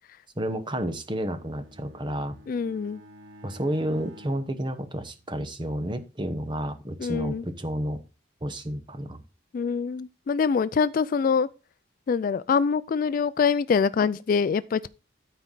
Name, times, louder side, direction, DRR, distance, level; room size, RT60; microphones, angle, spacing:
voice 1, 0.4-2.4 3.4-8.0 8.4-9.2, right 1 dB, 25° right, 0.9 m, -31 dB
Bowed string instrument, 1.0-5.6, equal, 60° right, 1.4 m, -51 dB
voice 2, 2.5-3.0 7.0-7.4 9.5-11.5 12.1-14.9, left 5 dB, 45° left, 0.3 m, -24 dB
13.0 x 4.5 x 3.8 m
head